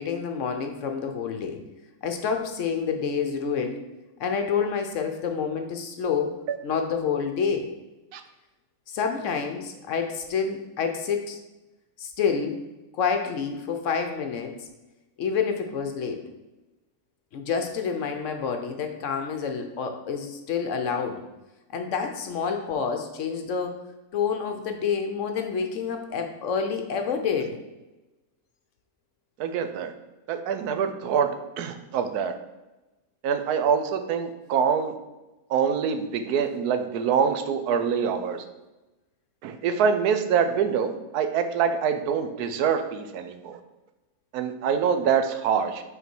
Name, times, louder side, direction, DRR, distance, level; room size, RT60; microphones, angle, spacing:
voice 1, 0.0-1.6 2.0-3.8 4.2-6.3 6.6-7.7 8.9-11.4 12.0-12.6 12.9-14.6 15.2-16.2 17.3-21.2 21.7-23.8 24.1-27.6, left 6 dB, 65° left, 5 dB, 0.9 m, -28 dB
voice 2, 29.4-29.9 30.3-31.3 31.6-32.3 33.2-34.9 35.5-38.5 39.4-43.6 44.3-45.8, right 7 dB, 85° right, 7 dB, 1.1 m, -25 dB
5.6 x 3.9 x 4.4 m, 1.1 s
omnidirectional pair, 1.6 m